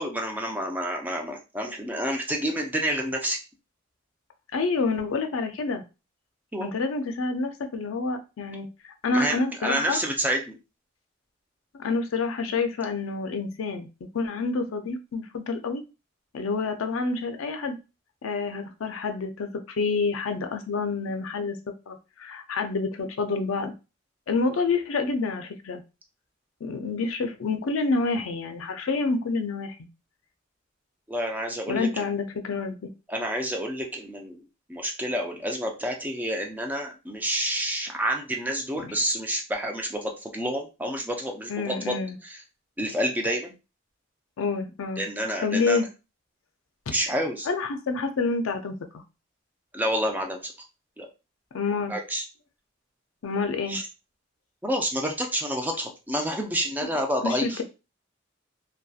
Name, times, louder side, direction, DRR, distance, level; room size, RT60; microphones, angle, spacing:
voice 1, 0.0-3.4 6.5-6.7 9.1-10.6 31.1-31.9 33.1-34.4 34.7-42.4 42.8-43.5 45.0-45.8 46.9-47.5 49.7-50.5 51.0-51.1 51.9-52.2 53.7-53.9 54.6-57.6, equal, 10° right, 2 dB, 0.4 m, -29 dB
voice 2, 4.5-5.8 6.6-10.0 11.7-13.9 14.1-15.8 16.3-17.8 18.2-21.6 21.9-23.7 24.3-25.8 26.6-29.8 31.7-32.9 38.8-39.0 41.5-42.2 44.4-45.0 45.4-45.9 47.5-49.0 51.5-51.9 53.2-53.8 57.2-57.6, left 4 dB, 85° left, 7 dB, 0.4 m, -28 dB
2.6 x 2.2 x 2.3 m, 0.29 s
head